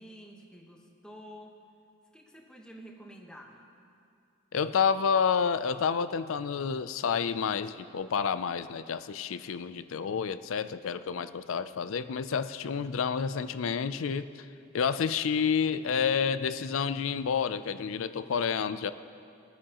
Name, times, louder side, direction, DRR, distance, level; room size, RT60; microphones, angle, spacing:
voice 1, 0.0-1.6 2.1-3.6, equal, 5° left, 0 dB, 1.1 m, -49 dB
voice 2, 4.5-14.3 14.7-18.9, left 6 dB, 65° left, 13 dB, 0.4 m, -29 dB
21.0 x 9.5 x 3.0 m, 2.5 s
head